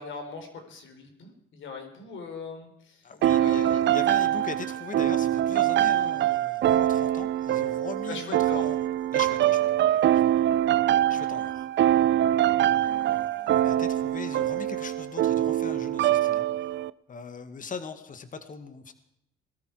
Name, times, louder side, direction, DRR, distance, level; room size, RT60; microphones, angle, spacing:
voice 1, 0.0-3.0 3.3-4.0 8.1-8.7, left 5 dB, 75° left, 5 dB, 4.2 m, -40 dB
voice 2, 3.0-8.8 9.1-10.2 11.1-11.7 12.6-16.7 17.1-18.9, left 5 dB, 40° left, 9 dB, 1.9 m, -41 dB
sound 1, 3.2-16.9, right 12 dB, 65° right, 0.5 m, -24 dB
21.5 x 13.5 x 4.7 m, 0.74 s
cardioid pair, 90°, 20 cm